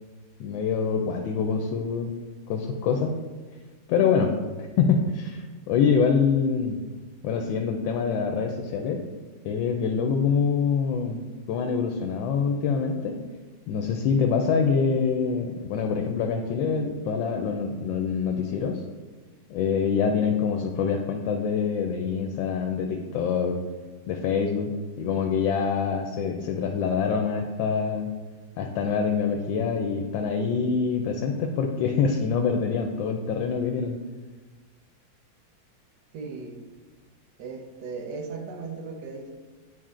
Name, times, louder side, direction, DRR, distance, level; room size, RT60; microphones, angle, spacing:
voice 1, 0.4-2.1 2.5-3.2 3.9-6.8 7.2-9.0 9.4-11.2 11.5-13.2 13.7-18.8 19.5-23.6 24.1-28.1 28.6-34.0, left 6 dB, 85° left, 3 dB, 1.3 m, -25 dB
voice 2, 36.1-36.6 37.4-39.3, right 4 dB, 70° right, 4 dB, 1.3 m, -37 dB
9.3 x 4.2 x 2.5 m, 1.3 s
omnidirectional pair, 2.0 m